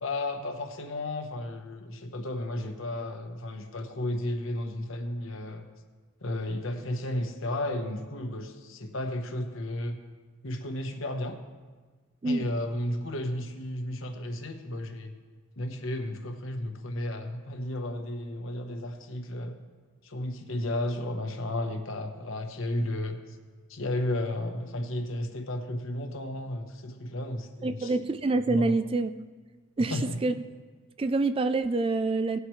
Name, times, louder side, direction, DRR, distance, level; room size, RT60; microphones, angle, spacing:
voice 1, 0.0-5.6 6.2-10.0 10.4-11.4 12.2-15.1 15.6-19.6 20.0-23.4 23.7-27.9 28.5-28.8 29.9-30.2, left 1 dB, 70° left, 5 dB, 1.1 m, -33 dB
voice 2, 27.6-29.1 29.8-30.3 31.0-32.4, right 3 dB, 25° right, 10 dB, 0.3 m, -26 dB
18.0 x 8.0 x 3.2 m, 1.4 s
head